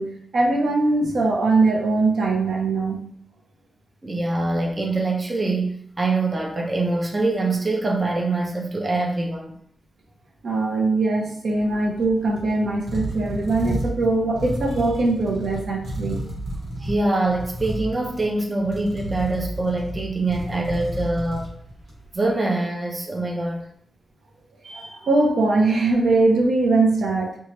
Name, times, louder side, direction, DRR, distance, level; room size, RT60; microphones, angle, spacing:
voice 1, 0.0-3.0 10.4-16.3 24.6-27.4, right 3 dB, 70° right, 1 dB, 0.6 m, -21 dB
voice 2, 4.0-9.6 16.8-21.5 22.1-23.7, right 2 dB, 25° right, 0 dB, 0.5 m, -24 dB
sound 1, 11.6-22.2, right 1 dB, 90° right, 1.1 m, -32 dB
3.0 x 2.3 x 2.9 m, 0.63 s
wide cardioid pair, 150°, 0 cm